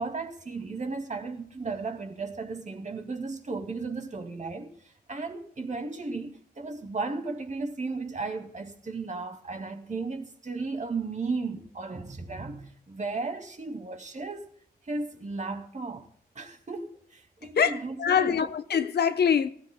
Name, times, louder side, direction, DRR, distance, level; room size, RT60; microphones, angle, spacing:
voice 1, 0.0-4.8 5.1-14.5 14.8-16.1 16.4-18.5, right 3 dB, 45° right, 2.3 m, -35 dB
voice 2, 17.6-19.5, left 7 dB, 85° left, 0.8 m, -24 dB
25.0 x 16.0 x 2.2 m
wide cardioid pair, 90°, 17 cm